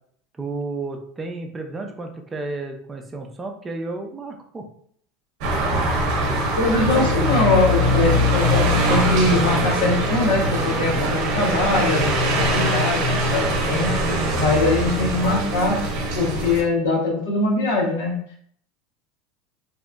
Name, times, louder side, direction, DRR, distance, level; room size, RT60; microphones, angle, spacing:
voice 1, 0.4-4.7 10.9-11.2, right 3 dB, 20° right, 3 dB, 0.5 m, -32 dB
sound 1, 5.4-16.6, equal, 65° right, 0.6 m, -22 dB
voice 2, 6.6-15.8 16.1-18.1, left 2 dB, 80° left, -1 dB, 0.8 m, -22 dB
2.8 x 2.4 x 2.2 m, 0.62 s
supercardioid pair, 110°, 0 cm